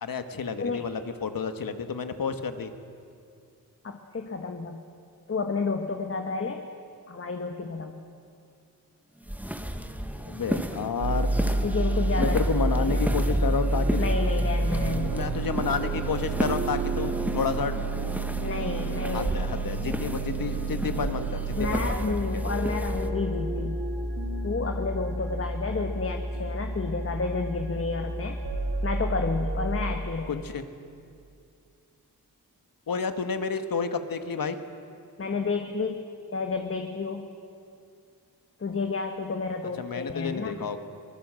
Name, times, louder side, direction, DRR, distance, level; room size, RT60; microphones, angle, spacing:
voice 1, 0.0-2.7 10.3-11.3 12.2-14.0 15.1-17.8 19.1-22.4 30.3-30.6 32.9-34.6 39.8-40.8, left 5 dB, 65° left, 8 dB, 1.5 m, -30 dB
voice 2, 0.6-0.9 3.8-4.8 5.3-6.7 7.1-8.0 11.6-12.3 12.7-13.1 14.0-15.4 18.4-19.3 21.6-23.8 24.4-28.4 28.8-30.4 35.2-36.0 36.3-37.3 38.6-40.6, left 4 dB, 35° left, 5 dB, 1.4 m, -31 dB
sound 1, 9.2-23.1, right 1 dB, 5° right, 1.3 m, -34 dB
sound 2, 11.0-30.0, right 2 dB, 75° right, 2.3 m, -29 dB
24.0 x 19.5 x 7.7 m, 2.4 s
wide cardioid pair, 85°, 37 cm